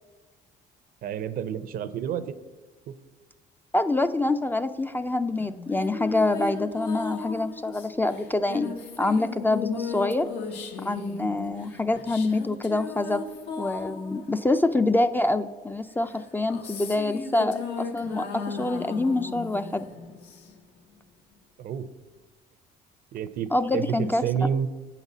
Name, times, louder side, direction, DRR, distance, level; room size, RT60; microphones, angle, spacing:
voice 1, 1.0-2.2 21.6-21.9 23.1-24.7, right 8 dB, 60° right, 13 dB, 0.6 m, -29 dB
voice 2, 3.7-10.3 10.8-13.2 13.6-19.9 23.5-24.2, left 2 dB, 10° left, 9 dB, 0.3 m, -26 dB
sound 1, 5.4-15.3 16.1-20.8, left 5 dB, 85° left, 1.1 m, -36 dB
8.6 x 4.1 x 7.1 m, 1.3 s
cardioid pair, 110°, 17 cm